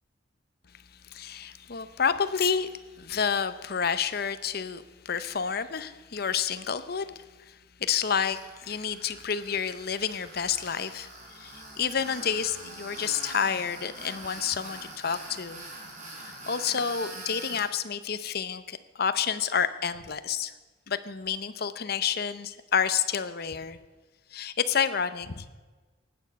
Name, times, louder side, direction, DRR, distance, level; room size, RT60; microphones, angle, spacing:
voice 1, 1.1-7.2 7.5-15.6 16.2-20.5 20.9-23.8 24.3-25.5, left 7 dB, 55° left, 12 dB, 0.7 m, -29 dB
Tools, 8.2-17.7, right 2 dB, 45° right, 3.7 m, -44 dB
16.0 x 9.8 x 5.3 m, 1.3 s
head